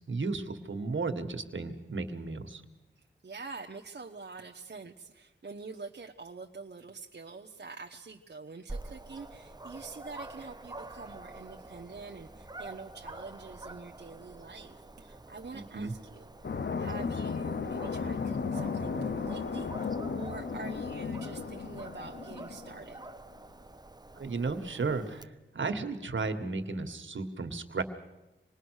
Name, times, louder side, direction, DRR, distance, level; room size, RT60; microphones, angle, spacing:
voice 1, 0.1-2.6 15.5-15.9 24.1-27.8, right 3 dB, 75° right, 8 dB, 1.7 m, -34 dB
voice 2, 3.0-16.5 16.8-23.0, right 4 dB, 60° right, 3 dB, 1.1 m, -46 dB
Dog, 8.7-25.2, right 2 dB, 20° right, 1.0 m, -47 dB
sound 1, 16.4-22.8, left 5 dB, 60° left, 0.9 m, -35 dB
26.5 x 20.0 x 6.5 m, 1.0 s
wide cardioid pair, 65°, 20 cm